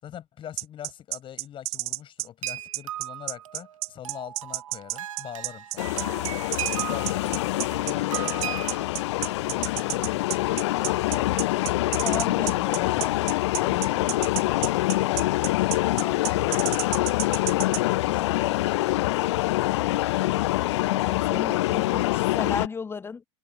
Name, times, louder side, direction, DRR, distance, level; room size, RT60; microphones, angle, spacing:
voice 1, 0.0-6.1 6.7-8.5 9.4-11.8 12.4-13.1 13.6-17.3 17.8-20.0, left 10 dB, 30° left, 6.0 m, -43 dB
sound 1, 0.6-17.8, right 23 dB, 35° right, 0.6 m, -31 dB
sound 2, 2.4-8.9, right 12 dB, 65° right, 1.0 m, -37 dB
sound 3, 5.8-22.7, left 17 dB, 55° left, 0.4 m, -25 dB
voice 2, 12.0-12.6 20.8-23.2, left 5 dB, 15° left, 1.0 m, -34 dB
figure-of-eight pair, 95°, 18 cm